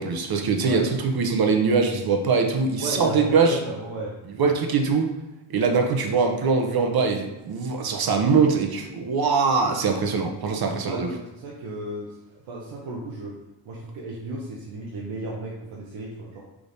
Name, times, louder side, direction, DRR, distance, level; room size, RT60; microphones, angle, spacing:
voice 1, 0.0-3.6 4.4-5.1 5.5-11.1, right 4 dB, 55° right, 4 dB, 0.8 m, -22 dB
voice 2, 2.8-4.1 10.8-13.4 13.6-16.4, right 2 dB, 85° right, -4 dB, 0.9 m, -34 dB
3.6 x 3.4 x 4.0 m, 1.0 s
cardioid pair, 85°, 45 cm